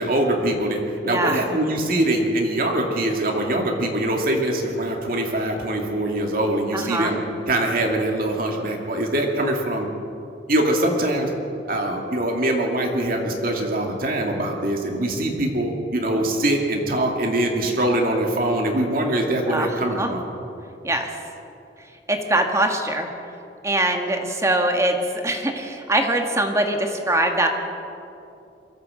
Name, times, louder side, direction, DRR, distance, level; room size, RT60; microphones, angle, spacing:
voice 1, 0.0-7.2 7.5-9.9 10.5-11.3 11.6-20.2, right 1 dB, 55° right, 1 dB, 2.5 m, -23 dB
voice 2, 1.0-1.4 6.7-7.1 19.5-19.7 20.0-20.1 20.8-21.1 22.1-23.1 23.6-25.0 25.2-27.5, right 1 dB, 15° right, 3 dB, 1.8 m, -22 dB
23.0 x 14.5 x 7.8 m, 2.8 s
head